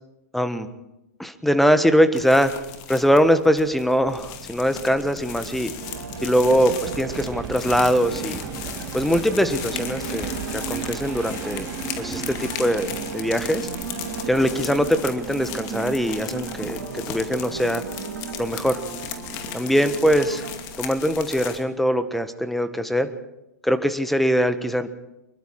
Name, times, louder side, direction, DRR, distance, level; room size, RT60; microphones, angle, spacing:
voice 1, 0.3-0.7 1.2-2.5 2.9-5.7 6.2-8.4 8.9-11.7 12.0-13.7 14.3-17.8 18.4-18.8 19.5-20.5 20.8-23.1 23.6-24.9, equal, ahead, 11 dB, 1.5 m, -22 dB
sound 1, 2.1-21.6, left 10 dB, 45° left, 2.4 m, -37 dB
sound 2, 3.7-21.0, right 8 dB, 30° right, 2.3 m, -36 dB
sound 3, 5.8-20.6, right 4 dB, 80° right, 2.6 m, -38 dB
25.5 x 22.0 x 4.8 m, 0.93 s
figure-of-eight pair, 105°, 9 cm